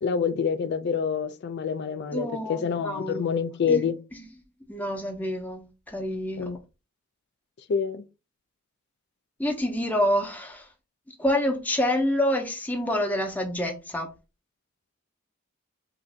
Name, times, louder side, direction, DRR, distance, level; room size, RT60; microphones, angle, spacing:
voice 1, 0.0-4.0 6.4-6.6 7.7-8.0, left 6 dB, 55° left, 0.4 m, -27 dB
voice 2, 2.1-3.2 3.7-3.8 4.7-6.5 9.4-10.7 11.2-14.1, left 1 dB, 10° left, 0.6 m, -27 dB
5.0 x 2.6 x 2.7 m
head